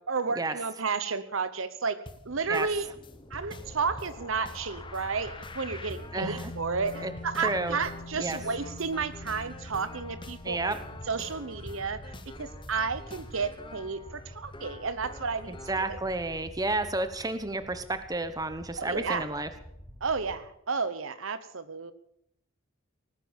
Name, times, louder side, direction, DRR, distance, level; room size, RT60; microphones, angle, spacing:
voice 1, 0.1-2.0 2.2-2.9 3.3-10.7 11.1-12.1 12.4-16.0 18.8-19.3 20.0-21.9, right 5 dB, 70° right, 13 dB, 1.0 m, -32 dB
sound 1, 2.1-15.9, left 2 dB, 25° left, 1.1 m, -47 dB
sound 2, 2.2-20.4, equal, ahead, 5.2 m, -47 dB
voice 2, 6.1-6.5 7.0-7.1 7.4-7.8 8.2-8.4 10.4-10.8 15.5-19.5, right 2 dB, 20° right, 10 dB, 1.1 m, -31 dB
sound 3, 6.2-14.7, left 2 dB, 80° left, 0.8 m, -47 dB
19.0 x 9.9 x 7.3 m, 0.76 s
head